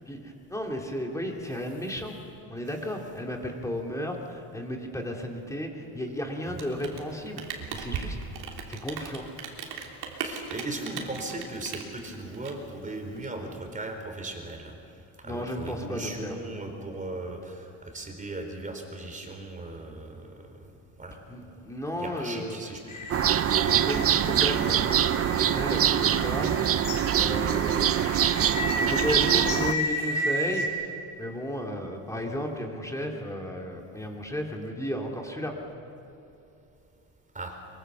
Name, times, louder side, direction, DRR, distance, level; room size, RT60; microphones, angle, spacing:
voice 1, 0.1-2.2 2.5-8.2 8.7-9.3 15.2-16.4 21.3-22.7 23.6-26.5 27.2-28.1 28.8-30.8 31.2-35.6, equal, 5° left, 1 dB, 2.8 m, -34 dB
Rain, 6.4-13.2, right 6 dB, 70° right, 3.5 m, -38 dB
voice 2, 10.2-14.7 15.2-20.6 21.0-21.2 22.0-23.0 37.3-37.6, right 2 dB, 20° right, 4 dB, 3.9 m, -37 dB
sound 1, 22.9-30.7, left 1 dB, 45° left, 4.7 m, -33 dB
sound 2, 23.1-29.7, right 10 dB, 35° right, 0.6 m, -24 dB
24.0 x 23.5 x 7.0 m, 2.8 s
cardioid pair, 130°, 41 cm